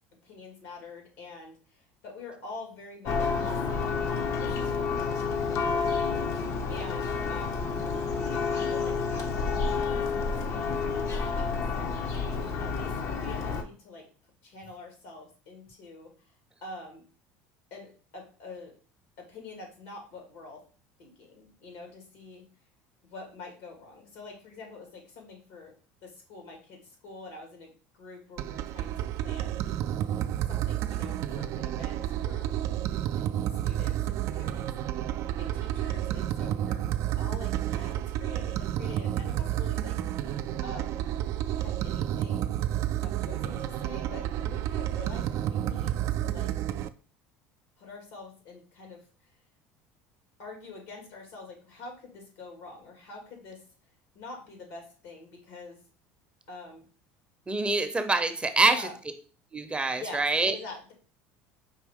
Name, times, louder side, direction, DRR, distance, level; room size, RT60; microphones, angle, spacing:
voice 1, 0.2-6.3 6.7-7.7 8.2-12.3 12.6-14.1 14.4-16.3 16.6-17.0 17.7-18.7 19.2-20.6 21.0-22.5 23.0-25.7 26.0-29.6 30.5-32.6 33.2-35.0 35.4-36.9 37.2-40.3 40.6-41.1 41.6-42.5 43.0-46.5 47.8-49.3 50.4-53.6 54.1-55.8 56.5-56.9 57.9-58.0 58.6-59.0 59.9-60.9, left 3 dB, 80° left, 1 dB, 2.1 m, -46 dB
Church bell, 3.1-13.6, left 5 dB, 55° left, 0.8 m, -29 dB
sound 1, 28.4-46.9, right 12 dB, 55° right, 0.3 m, -30 dB
voice 2, 57.5-58.9 59.5-60.5, right 3 dB, 15° right, 8 dB, 0.6 m, -25 dB
5.3 x 2.8 x 3.6 m, 0.39 s
supercardioid pair, 90°, 6 cm